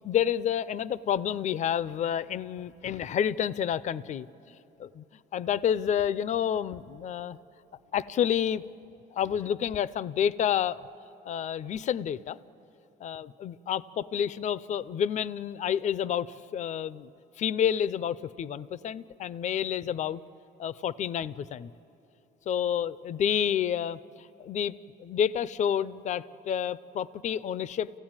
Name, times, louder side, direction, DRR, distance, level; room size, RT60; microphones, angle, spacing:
voice 1, 0.0-4.3 4.8-5.0 5.3-7.4 7.9-8.6 9.1-10.8 11.3-12.4 13.0-17.1 17.4-20.2 20.6-21.7 22.5-24.7 25.0-27.9, left 9 dB, 45° left, 17 dB, 0.5 m, -29 dB
30.0 x 16.0 x 8.8 m, 3.0 s
cardioid pair, 110°, 17 cm